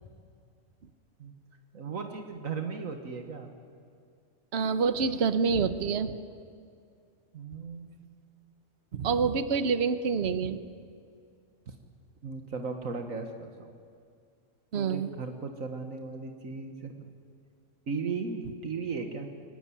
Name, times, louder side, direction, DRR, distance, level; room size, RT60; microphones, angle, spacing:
voice 1, 1.7-3.5 7.3-8.0 11.7-11.8 12.2-13.7 14.7-17.1 17.9-19.3, right 4 dB, 80° right, 5 dB, 1.9 m, -36 dB
voice 2, 4.5-6.1 8.9-10.6 14.7-15.1, right 5 dB, 55° right, 12 dB, 1.2 m, -27 dB
23.5 x 18.5 x 9.9 m, 2.2 s
omnidirectional pair, 1.4 m